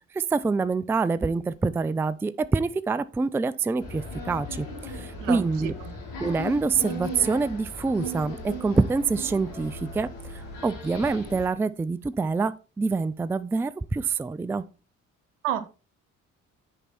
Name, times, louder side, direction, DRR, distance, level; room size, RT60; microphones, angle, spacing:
voice 1, 0.1-5.7 6.2-14.6, right 4 dB, 5° right, 0.4 m, -26 dB
athens emst, 3.8-11.5, left 1 dB, 70° left, 3.0 m, -37 dB
voice 2, 5.2-5.9 15.4-15.7, right 11 dB, 70° right, 0.9 m, -30 dB
9.9 x 4.5 x 4.2 m
figure-of-eight pair, 45°, 38 cm